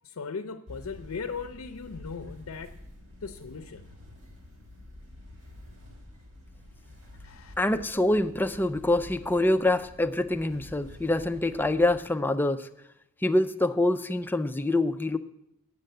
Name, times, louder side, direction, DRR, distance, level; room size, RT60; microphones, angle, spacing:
voice 1, 0.0-2.8 3.2-3.9 7.2-7.5, left 5 dB, 85° left, 8 dB, 0.6 m, -38 dB
sound 1, 0.7-12.0, left 1 dB, 80° right, 3.0 m, -48 dB
voice 2, 7.6-12.7 13.2-15.2, left 1 dB, 10° left, 8 dB, 0.4 m, -25 dB
9.1 x 7.5 x 7.6 m, 0.80 s
head